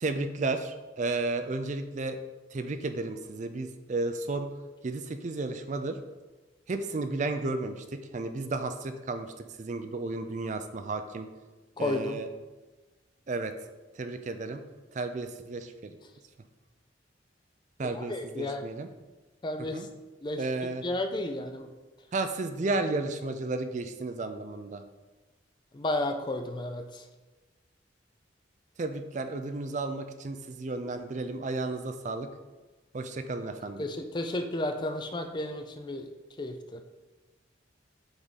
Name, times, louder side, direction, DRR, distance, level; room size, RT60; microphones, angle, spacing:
voice 1, 0.0-2.2 2.5-4.5 4.8-6.0 6.7-9.3 9.6-11.3 11.8-12.3 13.3-13.5 14.0-14.6 14.9-15.9 17.8-18.9 19.6-19.9 20.4-20.8 22.1-24.8 28.8-32.3 32.9-33.8, right 3 dB, 40° right, 8 dB, 0.4 m, -33 dB
voice 2, 11.8-12.2 18.1-18.6 19.4-19.8 20.2-20.4 20.8-21.7 25.7-26.8 33.8-36.1 36.4-36.8, left 1 dB, 25° left, 6 dB, 0.4 m, -32 dB
7.9 x 3.6 x 4.1 m, 1.2 s
head